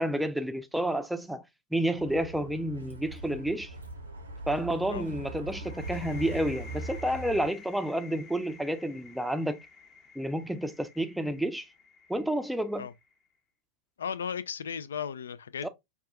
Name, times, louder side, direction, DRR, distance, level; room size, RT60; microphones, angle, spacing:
voice 1, 0.0-1.4 1.7-3.8 4.5-9.6 10.2-11.7 12.1-12.9 15.6-15.7, right 1 dB, ahead, 0.5 m, -30 dB
Bus, 2.0-7.5, right 1 dB, 85° right, 1.0 m, -40 dB
sound 1, 5.6-13.2, left 5 dB, 30° left, 0.7 m, -51 dB
voice 2, 14.0-15.7, left 7 dB, 65° left, 0.3 m, -35 dB
5.3 x 2.3 x 2.3 m
figure-of-eight pair, 90°, 0 cm